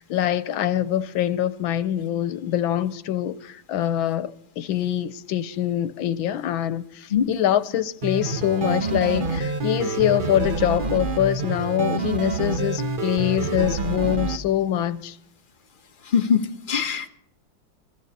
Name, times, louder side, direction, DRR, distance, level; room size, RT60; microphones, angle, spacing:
voice 1, 0.0-15.2, left 11 dB, 90° left, 1.5 m, -24 dB
sound 1, 8.0-14.4, right 3 dB, 35° right, 0.9 m, -27 dB
voice 2, 16.1-17.1, left 7 dB, 40° left, 0.8 m, -22 dB
27.5 x 13.5 x 2.8 m
omnidirectional pair, 2.1 m